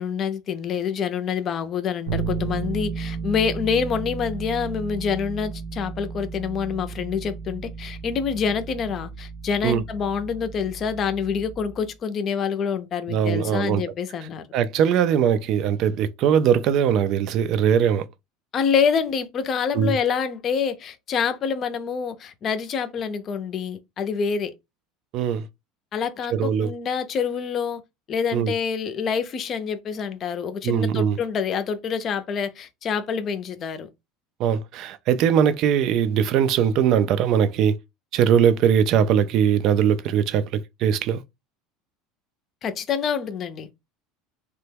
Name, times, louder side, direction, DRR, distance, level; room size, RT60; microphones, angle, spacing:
voice 1, 0.0-14.5 18.5-24.5 25.9-27.8 28.1-33.9 42.6-43.7, left 6 dB, 40° left, 0.5 m, -26 dB
Bass guitar, 2.1-11.9, right 5 dB, 90° right, 0.9 m, -34 dB
voice 2, 13.1-13.8 14.5-18.1 19.7-20.0 25.1-25.5 26.3-26.7 28.3-28.5 30.6-31.2 34.4-37.8 38.1-41.2, right 8 dB, 55° right, 0.4 m, -21 dB
3.0 x 2.2 x 3.3 m
supercardioid pair, 120°, 0 cm